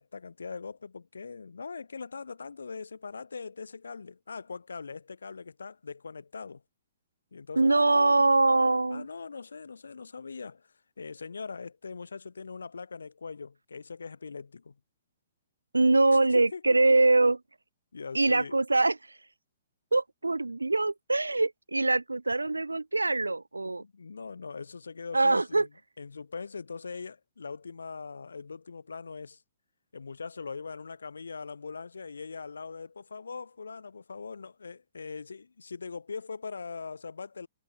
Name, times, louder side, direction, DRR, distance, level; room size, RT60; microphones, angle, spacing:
voice 1, 0.0-6.6 7.3-8.2 8.9-14.8 16.3-16.6 17.9-18.6 23.8-25.7 26.0-29.4 29.9-37.5, left 5 dB, 70° left, 3.8 m, -41 dB
voice 2, 7.6-9.1 15.7-17.4 18.1-19.0 19.9-23.8 25.1-25.7, right 2 dB, 80° right, 0.7 m, -23 dB
figure-of-eight pair, 115°, 0 cm